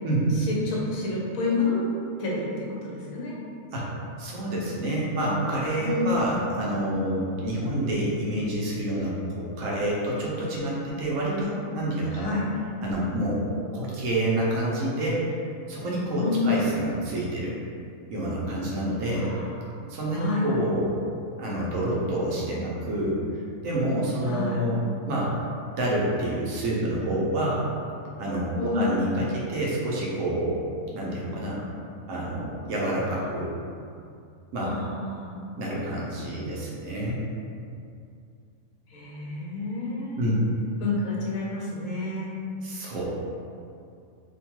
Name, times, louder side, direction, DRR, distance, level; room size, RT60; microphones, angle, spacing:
voice 1, 0.4-1.8 2.2-3.4 5.8-6.1 12.1-12.5 16.2-16.5 19.1-19.5 20.1-20.5 22.5-22.8 24.2-24.7 28.6-28.8 33.2-33.3 34.6-35.4 38.9-40.2 40.8-42.3, left 3 dB, 85° left, -4 dB, 1.1 m, -29 dB
voice 2, 4.2-12.3 12.8-13.4 13.7-15.4 15.7-17.6 18.1-19.3 19.9-21.0 21.4-23.2 23.6-25.3 25.8-27.6 28.2-30.6 30.9-31.6 32.1-33.5 34.5-34.7 35.6-37.2 40.2-40.5 42.6-43.1, right 1 dB, 80° right, -5 dB, 1.0 m, -28 dB
2.9 x 2.2 x 2.9 m, 2.5 s
omnidirectional pair, 1.4 m